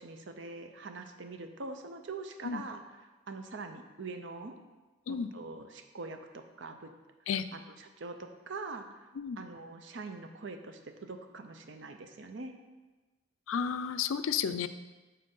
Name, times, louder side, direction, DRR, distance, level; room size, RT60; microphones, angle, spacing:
voice 1, 0.0-4.6 5.1-6.9 7.5-9.1 9.4-12.5, right 3 dB, 65° right, 6 dB, 0.6 m, -43 dB
voice 2, 13.5-14.7, left 7 dB, 85° left, 11 dB, 0.4 m, -32 dB
7.6 x 4.3 x 5.4 m, 1.2 s
head